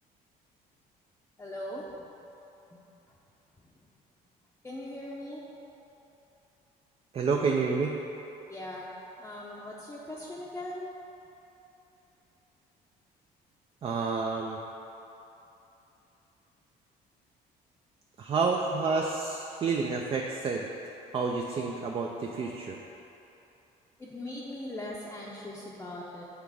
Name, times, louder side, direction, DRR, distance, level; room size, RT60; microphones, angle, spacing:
voice 1, 1.4-1.8 3.1-3.2 4.6-5.4 8.5-8.9 9.2-10.9 24.0-26.2, left 1 dB, 15° left, -6 dB, 0.6 m, -40 dB
voice 2, 7.1-8.0 13.8-14.6 18.2-20.7 21.1-22.8, right 4 dB, 35° right, 1 dB, 0.4 m, -29 dB
7.2 x 3.4 x 4.9 m, 3.0 s
cardioid pair, 110°, 17 cm